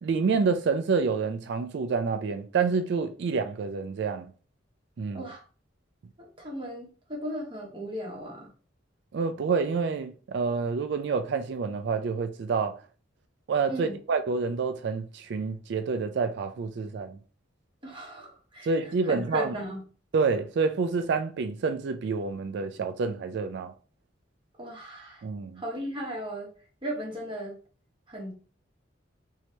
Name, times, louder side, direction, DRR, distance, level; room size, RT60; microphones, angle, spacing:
voice 1, 0.0-4.3 5.0-5.2 9.1-12.8 13.5-17.2 18.6-19.5 20.1-23.7 25.2-25.6, right 4 dB, 60° right, 0.3 m, -28 dB
voice 2, 6.2-8.5 13.7-14.0 17.8-19.8 24.6-25.2 25.6-26.5 26.8-27.6 28.1-28.3, equal, 25° right, 1.1 m, -36 dB
3.0 x 2.7 x 3.3 m
head